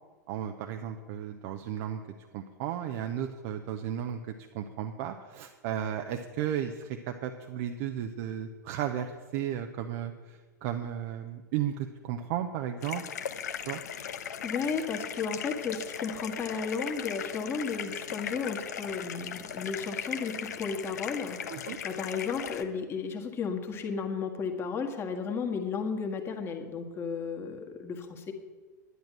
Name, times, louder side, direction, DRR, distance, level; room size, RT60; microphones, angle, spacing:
voice 1, 0.3-2.0 2.3-13.0 13.7-13.8 21.5-21.8, right 10 dB, 45° right, 5 dB, 0.7 m, -34 dB
sound 1, 12.8-22.6, left 8 dB, 60° left, 0.9 m, -38 dB
voice 2, 14.4-28.3, left 5 dB, 25° left, 3 dB, 1.7 m, -34 dB
11.0 x 10.5 x 6.1 m, 1.4 s
figure-of-eight pair, 95°, 10 cm